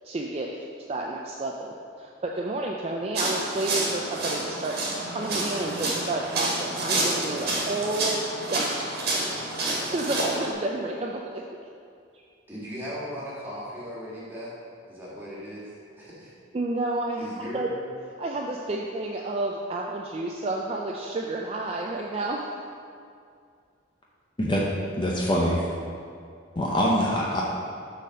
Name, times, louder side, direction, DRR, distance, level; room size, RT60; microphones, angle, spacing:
voice 1, 0.0-0.5 0.9-4.8 5.1-8.2 8.5-8.7 9.6-11.4 12.1-12.2 16.5-17.7 18.2-22.6, right 2 dB, 30° right, -1 dB, 0.3 m, -30 dB
sound 1, 3.1-10.5, right 2 dB, 50° right, 1.5 m, -29 dB
voice 2, 12.5-14.5 14.9-16.3 17.2-17.7, equal, 10° right, -8 dB, 1.6 m, -38 dB
voice 3, 25.0-25.6 26.6-27.4, equal, 25° left, -3 dB, 0.6 m, -24 dB
6.6 x 4.0 x 6.2 m, 2.3 s
head